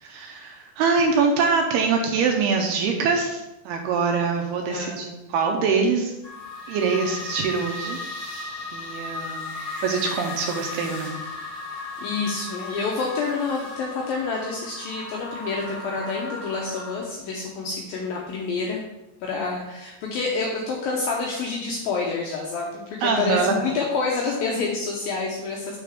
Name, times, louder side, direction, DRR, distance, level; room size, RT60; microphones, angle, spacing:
voice 1, 0.0-6.1 6.7-8.0 8.7-11.2 23.0-23.6, right 5 dB, 75° right, 3 dB, 2.5 m, -24 dB
voice 2, 4.7-5.0 12.0-18.8 19.2-25.8, left 4 dB, 80° left, -2 dB, 2.1 m, -28 dB
sound 1, 6.2-17.0, left 2 dB, 30° left, 2.4 m, -35 dB
6.8 x 6.5 x 3.5 m, 0.94 s
omnidirectional pair, 5.0 m